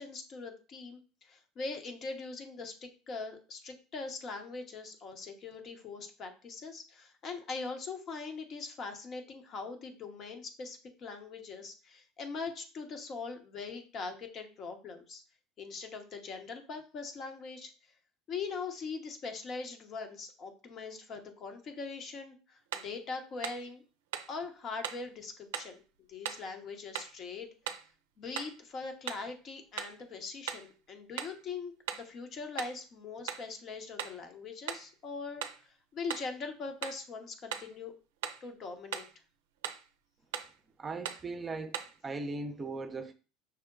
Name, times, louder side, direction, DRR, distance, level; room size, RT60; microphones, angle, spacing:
voice 1, 0.0-15.2 15.6-17.7 18.3-23.8 24.3-25.8 26.1-27.5 28.2-37.9 38.4-39.1, left 4 dB, 45° left, 0.9 m, -41 dB
sound 1, 22.7-23.0 23.4-23.7 24.1-24.4 24.8-25.1 25.5-25.8 26.3-26.5 27.0-27.2 27.7-27.9 28.4-28.6 29.1-29.3 29.8-30.0 30.5-30.7 31.2-31.4 31.9-32.1 32.6-32.8 33.3-33.5 34.0-34.2 34.7-34.9 35.4-35.6 36.1-36.3 36.8-37.1 37.5-37.7 38.2-38.5 38.9-39.2 39.6-39.9 40.3-40.6 41.1-41.3 41.7-42.0, right 9 dB, 80° right, 0.4 m, -39 dB
voice 2, 40.8-43.1, right 3 dB, 25° right, 0.6 m, -38 dB
5.7 x 2.2 x 3.7 m
hypercardioid pair, 80°, 0 cm